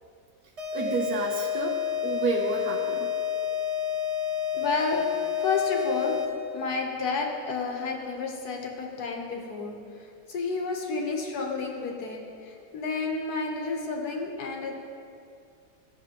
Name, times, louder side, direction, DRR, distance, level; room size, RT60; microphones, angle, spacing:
sound 1, 0.6-6.5, left 9 dB, 45° right, 1.5 m, -29 dB
voice 1, 0.7-3.1, right 4 dB, 80° right, 0 dB, 1.3 m, -30 dB
voice 2, 4.5-5.1 5.4-6.2 6.5-14.8, left 4 dB, 80° left, 1 dB, 1.6 m, -31 dB
14.0 x 6.7 x 2.9 m, 2.5 s
omnidirectional pair, 1.6 m